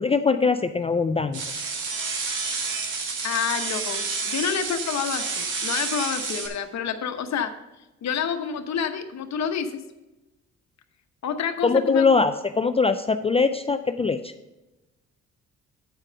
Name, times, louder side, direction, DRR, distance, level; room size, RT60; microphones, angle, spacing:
voice 1, 0.0-1.4 11.6-14.3, left 4 dB, 20° left, 9 dB, 0.4 m, -22 dB
sound 1, 1.3-6.5, right 4 dB, 75° right, 1.9 m, -29 dB
voice 2, 3.2-7.5 8.0-9.8 11.2-12.2, left 7 dB, 60° left, 7 dB, 1.1 m, -28 dB
9.1 x 4.8 x 6.7 m, 1.0 s
cardioid pair, 90°, 30 cm